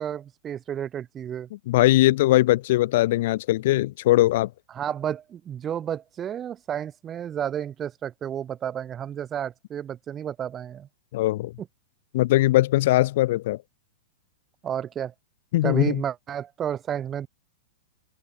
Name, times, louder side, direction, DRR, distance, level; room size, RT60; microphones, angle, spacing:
voice 1, 0.0-1.5 4.7-10.9 14.6-15.1 15.6-17.3, right 9 dB, 25° right, 3.2 m, -31 dB
voice 2, 1.7-4.5 11.1-11.5 12.1-13.6 15.5-16.0, left 16 dB, 60° left, 2.4 m, -20 dB
open air
hypercardioid pair, 140°, 0 cm